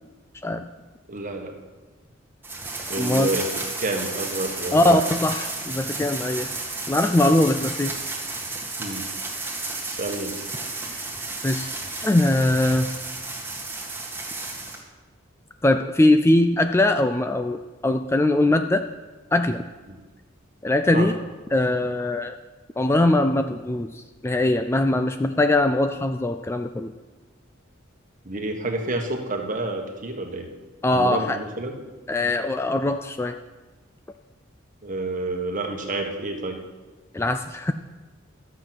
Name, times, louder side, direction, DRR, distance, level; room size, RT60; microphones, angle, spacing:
voice 1, 1.1-1.5 2.9-3.5 3.8-5.0 8.8-9.1 9.9-10.4 19.9-20.0 20.9-21.1 28.2-30.5 30.9-31.8 34.8-36.6, right 2 dB, 40° right, 3 dB, 1.4 m, -29 dB
sound 1, 2.4-14.8, right 3 dB, 10° right, 1.8 m, -32 dB
voice 2, 3.0-3.3 4.7-6.5 6.9-8.0 11.0-11.1 11.4-11.7 12.0-12.9 15.6-18.9 19.3-19.6 20.6-21.2 21.5-22.3 22.8-26.9 30.8-31.4 32.1-33.4 37.1-37.7, left 1 dB, 10° left, 8 dB, 0.3 m, -21 dB
13.0 x 7.7 x 6.0 m, 1.3 s
head